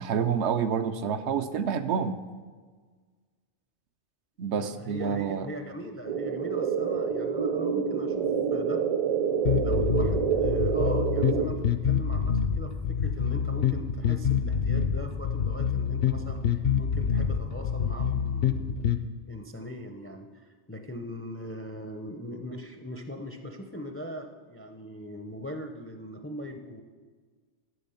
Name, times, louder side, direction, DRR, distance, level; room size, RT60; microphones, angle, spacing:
voice 1, 0.0-2.2 4.4-5.5, right 7 dB, 75° right, 9 dB, 0.9 m, -28 dB
voice 2, 4.5-8.8 9.6-18.8 19.3-26.8, equal, 15° left, 6 dB, 0.4 m, -40 dB
sound 1, 6.0-11.5, right 7 dB, 35° right, 0.6 m, -27 dB
sound 2, 9.4-19.0, left 7 dB, 60° left, 0.7 m, -27 dB
11.0 x 7.0 x 5.6 m, 1.5 s
omnidirectional pair, 1.2 m